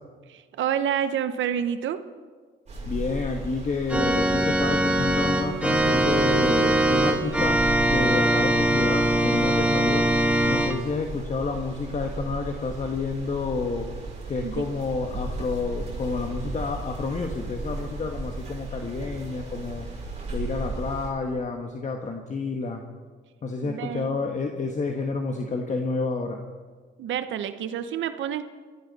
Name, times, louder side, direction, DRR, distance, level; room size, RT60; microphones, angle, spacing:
voice 1, 0.3-2.0 14.4-14.6 23.6-24.2 27.0-28.4, right 9 dB, 75° right, 11 dB, 0.9 m, -28 dB
sound 1, 2.7-21.1, right 2 dB, 35° right, 6.6 m, -36 dB
voice 2, 2.8-10.1 10.5-13.9 14.3-19.9 20.3-22.8 23.4-26.4, left 4 dB, 35° left, 3 dB, 1.4 m, -30 dB
Organ, 3.9-10.7, right 1 dB, 5° right, 1.7 m, -22 dB
22.0 x 15.0 x 4.2 m, 1.5 s
cardioid pair, 90°, 20 cm